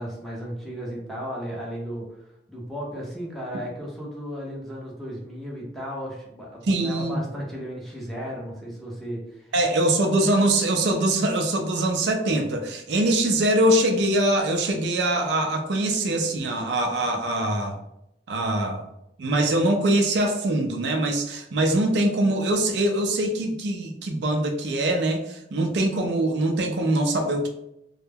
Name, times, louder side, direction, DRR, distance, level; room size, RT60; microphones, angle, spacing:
voice 1, 0.0-9.6, equal, ahead, -4 dB, 0.6 m, -35 dB
voice 2, 6.6-7.2 9.5-17.8 18.3-18.9 19.2-27.5, right 1 dB, 70° right, 4 dB, 0.4 m, -23 dB
2.2 x 2.0 x 3.3 m, 0.81 s
head